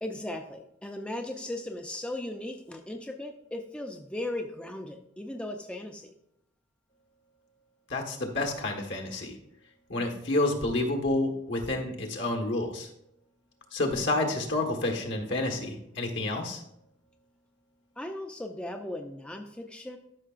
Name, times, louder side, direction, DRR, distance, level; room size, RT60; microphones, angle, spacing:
voice 1, 0.0-6.1 18.0-20.0, left 1 dB, 5° left, 3 dB, 0.4 m, -37 dB
voice 2, 7.9-9.4 9.9-12.9 13.7-16.6, left 2 dB, 70° left, 3 dB, 1.4 m, -29 dB
12.5 x 5.8 x 2.5 m, 0.78 s
head